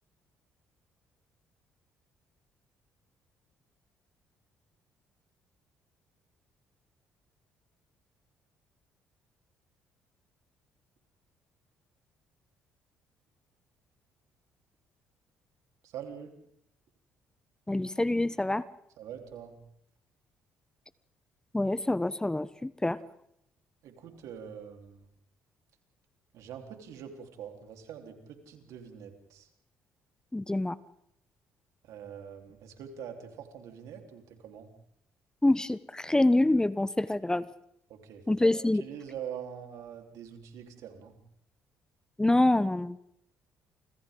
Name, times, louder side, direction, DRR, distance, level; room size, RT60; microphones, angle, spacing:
voice 1, 15.8-16.3 19.0-19.6 23.8-25.1 26.3-29.5 31.8-34.7 37.9-41.2, right 8 dB, 70° right, 4 dB, 3.8 m, -44 dB
voice 2, 17.7-18.6 21.5-23.0 30.3-30.8 35.4-37.5 38.3-38.8 42.2-43.0, left 1 dB, 10° left, 17 dB, 0.9 m, -26 dB
29.0 x 26.5 x 3.8 m, 0.75 s
hypercardioid pair, 60°, 6 cm